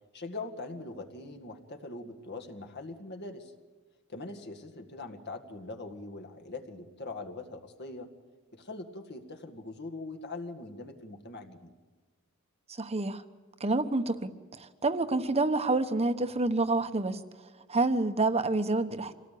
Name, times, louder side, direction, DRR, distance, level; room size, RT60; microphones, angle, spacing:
voice 1, 0.1-3.5 4.1-8.1 8.5-11.7, left 2 dB, 55° left, 4 dB, 2.1 m, -42 dB
voice 2, 12.8-13.2 13.6-17.2 17.7-19.1, right 2 dB, 30° right, 9 dB, 1.1 m, -28 dB
26.0 x 17.5 x 8.6 m, 1.3 s
head